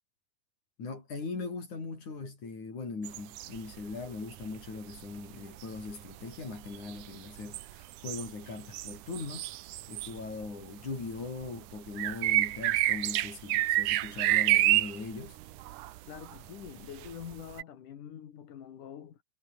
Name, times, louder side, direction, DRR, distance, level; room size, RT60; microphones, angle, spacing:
voice 1, 0.8-9.5 9.9-15.4, left 4 dB, 70° left, 8.2 m, -40 dB
sound 1, 3.0-4.1 4.3-10.6 10.9-17.6, right 15 dB, 85° right, 2.4 m, -29 dB
voice 2, 16.1-19.2, left 9 dB, 85° left, 3.7 m, -45 dB
omnidirectional pair, 3.5 m